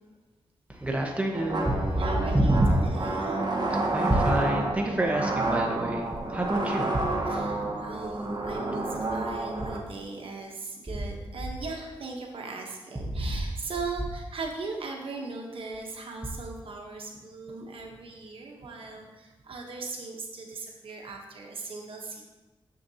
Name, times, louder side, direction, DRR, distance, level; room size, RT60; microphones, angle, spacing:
voice 1, 0.8-2.8 3.7-7.0 13.2-13.3, right 1 dB, 15° right, 0 dB, 1.1 m, -27 dB
sound 1, 1.3-9.8, right 2 dB, 50° right, 1.2 m, -30 dB
voice 2, 2.0-3.5 7.2-22.2, right 3 dB, 75° right, 1 dB, 1.0 m, -39 dB
7.0 x 6.5 x 2.8 m, 1.1 s
cardioid pair, 70°, 9 cm